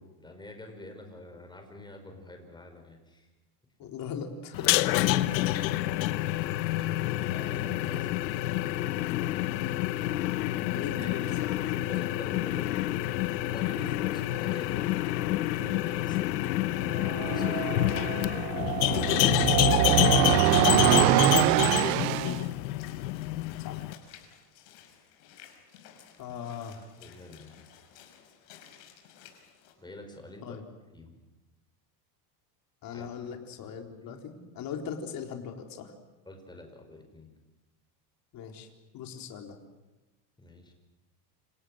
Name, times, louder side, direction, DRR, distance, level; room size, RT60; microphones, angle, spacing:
voice 1, 0.0-3.3 7.3-8.1 10.7-11.2 11.7-12.8 13.4-19.5 21.8-22.0 26.3-26.4 27.0-27.7 29.8-30.6 30.9-31.2 32.9-33.1 34.0-34.2 36.3-37.3 40.4-40.7, left 1 dB, 10° left, 4 dB, 5.5 m, -46 dB
voice 2, 3.8-4.9 7.1-7.3 10.7-11.5 20.6-21.3 21.8-22.4 23.6-23.8 26.2-26.9 30.4-30.6 32.8-35.9 38.3-38.7 38.9-39.6, left 7 dB, 40° left, 3 dB, 4.1 m, -39 dB
sound 1, 4.5-23.9, left 15 dB, 85° left, 1.3 m, -28 dB
sound 2, 17.0-22.4, right 17 dB, 75° right, 1.0 m, -24 dB
Walk footsteps / Splash splatter, 22.4-29.7, left 9 dB, 70° left, 5.8 m, -55 dB
30.0 x 27.5 x 6.5 m, 1.1 s
supercardioid pair, 135°, 50 cm